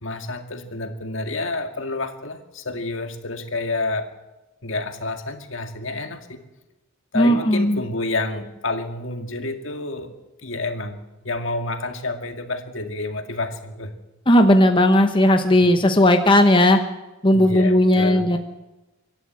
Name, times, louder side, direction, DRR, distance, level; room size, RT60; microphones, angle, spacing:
voice 1, 0.0-4.2 4.6-6.4 7.1-13.9 15.6-15.7 17.3-18.3, left 2 dB, 65° left, 6 dB, 2.1 m, -29 dB
voice 2, 7.1-7.8 14.3-16.8 17.2-18.4, left 1 dB, 25° left, 6 dB, 1.1 m, -16 dB
25.0 x 12.5 x 8.7 m, 1.0 s
head